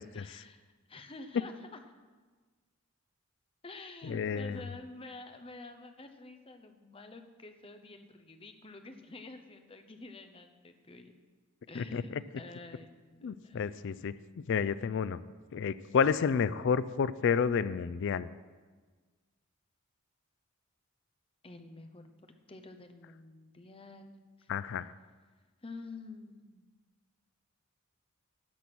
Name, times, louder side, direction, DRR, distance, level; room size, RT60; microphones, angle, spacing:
voice 1, 0.1-1.8 3.6-11.2 11.7-13.7 21.4-24.9 25.6-26.6, left 3 dB, 25° left, 7 dB, 0.8 m, -49 dB
voice 2, 4.1-4.6 11.8-12.0 13.2-14.1 14.5-15.2 15.5-18.3 24.5-24.9, left 6 dB, 60° left, 16 dB, 0.4 m, -30 dB
12.5 x 7.1 x 6.1 m, 1.4 s
head